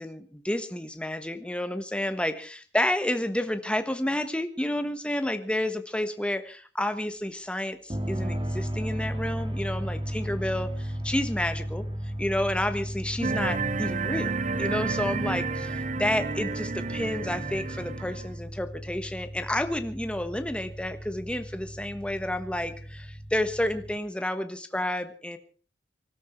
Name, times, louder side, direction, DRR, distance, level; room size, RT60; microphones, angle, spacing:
voice 1, 0.0-11.8 12.2-25.4, left 1 dB, 5° left, 9 dB, 1.3 m, -30 dB
sound 1, 7.9-24.0, equal, 30° right, 2.9 m, -35 dB
sound 2, 13.2-18.3, right 4 dB, 45° right, 0.9 m, -31 dB
25.0 x 13.0 x 4.5 m, 0.38 s
head